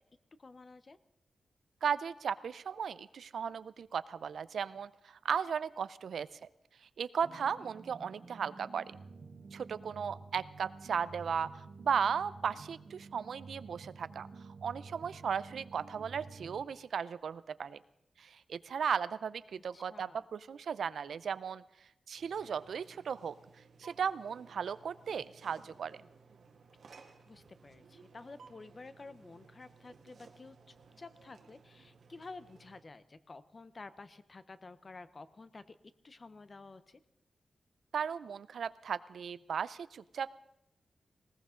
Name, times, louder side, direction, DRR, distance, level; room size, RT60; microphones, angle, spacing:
voice 1, 0.4-1.0 7.4-7.7 12.5-12.6 19.7-20.2 27.3-35.8 36.0-37.0, left 3 dB, 30° left, 13 dB, 0.7 m, -51 dB
voice 2, 1.8-6.3 7.0-9.0 9.5-14.3 14.6-17.8 18.2-21.6 22.1-23.3 23.8-26.0 37.9-40.3, right 7 dB, 85° right, 16 dB, 0.5 m, -36 dB
sound 1, 7.2-16.6, right 4 dB, 50° right, 1.1 m, -51 dB
sound 2, 22.2-32.8, right 5 dB, 65° right, 1.5 m, -59 dB
19.5 x 18.5 x 3.8 m, 0.83 s
wide cardioid pair, 175°, 0 cm